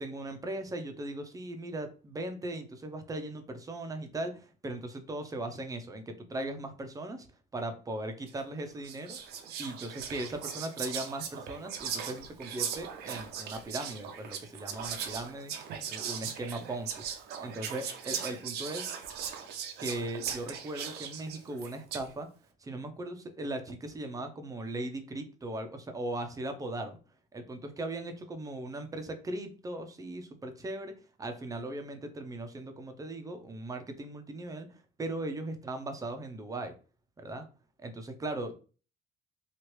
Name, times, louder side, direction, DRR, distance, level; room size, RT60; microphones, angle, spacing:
voice 1, 0.0-7.3 7.5-9.2 9.6-17.0 17.4-18.9 19.8-22.3 22.6-27.0 27.3-36.7 37.2-37.5 37.8-38.5, right 1 dB, 20° right, 6 dB, 0.6 m, -38 dB
Whispering, 8.3-8.5 8.8-22.1, right 7 dB, 75° right, 0.6 m, -39 dB
3.0 x 2.4 x 3.1 m, 0.36 s
cardioid pair, 110°, 17 cm